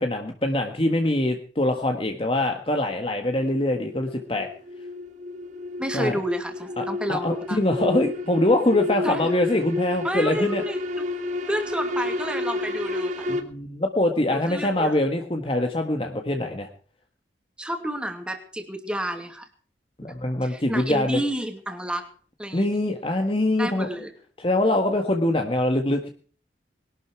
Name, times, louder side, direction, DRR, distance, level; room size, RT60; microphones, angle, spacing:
voice 1, 0.0-4.5 5.9-6.2 6.8-10.6 13.3-16.7 20.0-21.2 22.5-23.9 24.4-26.1, left 1 dB, 30° left, 4 dB, 1.6 m, -24 dB
sound 1, 2.9-13.4, left 2 dB, 45° right, 2.3 m, -31 dB
voice 2, 5.8-7.6 9.0-9.3 10.0-11.1 11.5-13.2 14.3-15.0 17.6-19.5 20.0-20.1 20.4-22.0 22.4-22.8 23.6-24.1, equal, 5° right, 6 dB, 2.5 m, -30 dB
21.5 x 12.0 x 4.7 m, 0.43 s
head